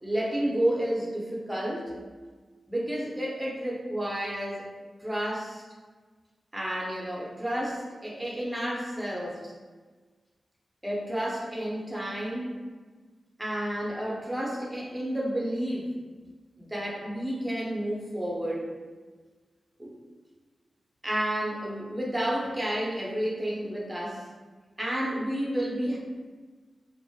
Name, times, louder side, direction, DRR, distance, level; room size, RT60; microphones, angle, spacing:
voice 1, 0.0-1.9 2.7-4.6 5.0-5.6 6.5-9.5 10.8-12.6 13.4-15.9 16.6-18.7 19.8-19.9 21.0-24.3 24.8-26.0, right 1 dB, 10° right, -3 dB, 0.7 m, -31 dB
2.2 x 2.0 x 2.8 m, 1.4 s
cardioid pair, 45°, 0 cm